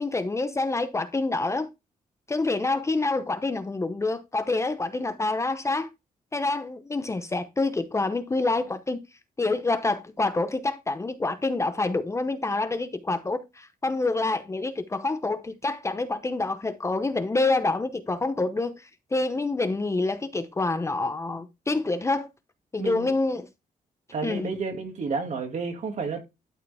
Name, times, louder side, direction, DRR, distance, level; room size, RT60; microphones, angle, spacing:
voice 1, 0.0-1.7 2.3-5.9 6.3-9.0 9.4-22.3 22.7-23.5 24.2-24.5, left 3 dB, 20° left, 0.8 m, -27 dB
voice 2, 22.8-23.1 24.1-26.2, right 4 dB, 55° right, 2.3 m, -31 dB
12.0 x 4.7 x 3.4 m
wide cardioid pair, 135°, 14 cm